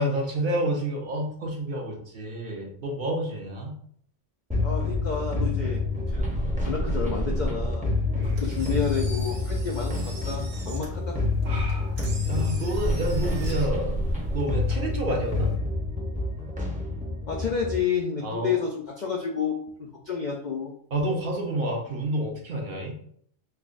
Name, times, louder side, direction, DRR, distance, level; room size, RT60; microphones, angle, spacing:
voice 1, 0.0-3.7 8.1-8.5 11.4-12.0 12.3-14.0 14.3-15.5 18.2-18.6 20.9-22.9, right 1 dB, 55° right, 1 dB, 0.7 m, -29 dB
sound 1, 4.5-17.8, left 2 dB, 10° right, 0.5 m, -27 dB
voice 2, 4.6-6.3 6.6-7.9 8.2-11.2 17.3-20.7, left 6 dB, 65° left, -1 dB, 0.4 m, -30 dB
Engine, 8.2-15.5, right 2 dB, 90° right, 1.3 m, -45 dB
5.5 x 2.1 x 2.5 m, 0.63 s
omnidirectional pair, 1.3 m